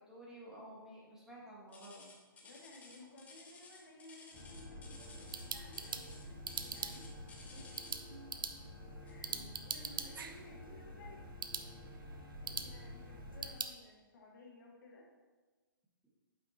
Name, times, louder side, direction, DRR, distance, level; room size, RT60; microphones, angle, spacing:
voice 1, 0.1-2.0 9.3-9.5, right 1 dB, 5° right, -5 dB, 1.6 m, -52 dB
sound 1, 1.7-8.1 9.1-9.3 9.9-10.0 10.7-10.8, left 3 dB, 10° left, 0.9 m, -56 dB
voice 2, 2.4-7.1 7.5-8.0 9.0-11.2 12.3-15.1, left 2 dB, 55° left, -2 dB, 2.0 m, -57 dB
sound 2, 4.3-13.5, left 1 dB, 30° left, 1.8 m, -50 dB
sound 3, 5.0-13.7, right 6 dB, 65° right, 0.6 m, -45 dB
8.5 x 5.7 x 2.9 m, 1.3 s
hypercardioid pair, 130°, 12 cm